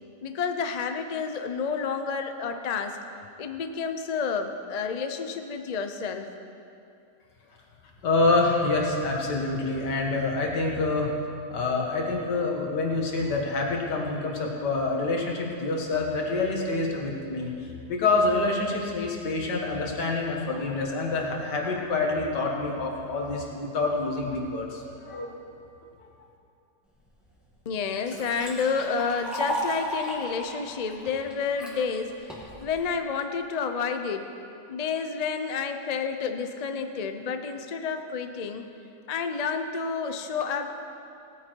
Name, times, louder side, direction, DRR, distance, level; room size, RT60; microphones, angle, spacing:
voice 1, 0.2-3.0 3.4-6.3 27.7-34.3 34.7-38.7 39.1-40.7, left 5 dB, 65° left, 6 dB, 0.4 m, -30 dB
voice 2, 8.0-11.2 11.5-25.4, left 3 dB, 85° left, 0 dB, 2.2 m, -27 dB
Liquid, 27.2-27.3 27.7-31.7 32.3-32.8, equal, ahead, 2.2 m, -34 dB
18.0 x 9.1 x 4.6 m, 2.7 s
omnidirectional pair, 1.8 m